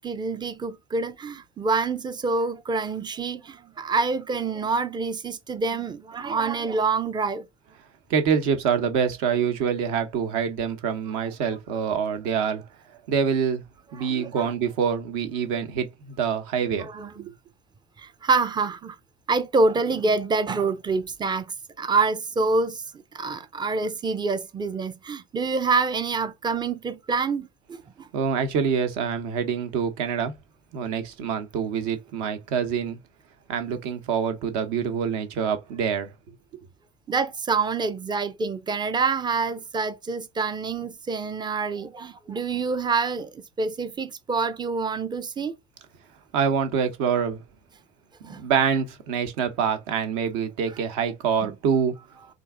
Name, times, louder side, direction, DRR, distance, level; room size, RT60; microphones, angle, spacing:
voice 1, 0.0-7.4 14.0-14.5 16.8-17.3 18.0-19.0 19.3-21.5 21.8-22.8 23.1-28.1 37.1-45.5 48.2-48.4 51.4-51.5, right 4 dB, 10° right, 0.5 m, -26 dB
voice 2, 8.1-12.6 13.1-13.6 13.9-16.9 17.2-17.3 28.1-30.3 30.7-33.0 33.5-36.1 46.3-47.4 48.2-51.9, right 7 dB, 55° right, 1.0 m, -25 dB
3.8 x 2.6 x 3.5 m
figure-of-eight pair, 65°, 37 cm